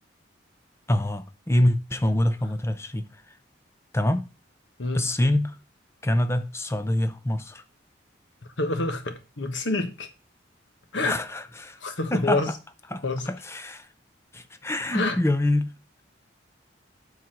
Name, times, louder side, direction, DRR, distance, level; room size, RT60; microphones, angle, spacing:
voice 1, 0.9-3.1 3.9-4.3 4.9-5.6 6.0-7.6 11.0-11.8 12.1-12.4 12.9-13.9 14.3-15.7, left 1 dB, 15° left, 0.6 m, -25 dB
voice 2, 8.6-10.1 10.9-11.2 11.8-12.5 13.0-13.3 14.9-15.2, left 2 dB, 75° left, 1.3 m, -27 dB
7.7 x 4.0 x 5.8 m
head